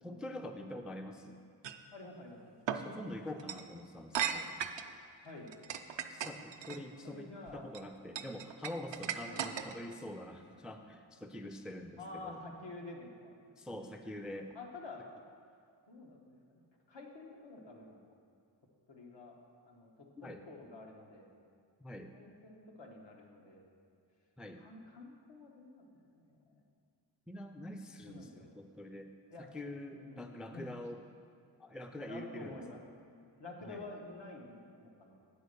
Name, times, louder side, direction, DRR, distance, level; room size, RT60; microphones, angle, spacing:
voice 1, 0.0-1.4 2.7-4.5 6.1-12.4 13.6-14.5 20.2-20.4 21.8-22.1 24.4-24.6 27.3-29.1 29.4-31.0 31.6-32.6 33.6-33.9, left 1 dB, ahead, 6 dB, 0.3 m, -45 dB
sound 1, 1.6-1.8 2.7-2.8 3.4-3.6 4.1-4.9 5.5-6.8 7.5-7.8 8.2-9.9, right 8 dB, 75° right, 0.5 m, -37 dB
voice 2, 1.9-2.6 5.2-5.5 7.0-7.7 9.2-9.5 12.0-13.3 13.7-14.1 14.5-15.0 15.9-16.6 16.9-18.1 18.9-19.4 19.6-21.3 22.1-23.6 24.6-25.9 26.1-26.6 28.1-28.5 29.3-29.5 29.9-30.8 32.1-32.8 33.4-35.1, left 2 dB, 80° left, 0 dB, 1.2 m, -49 dB
9.1 x 4.3 x 6.6 m, 2.3 s
wide cardioid pair, 105°, 43 cm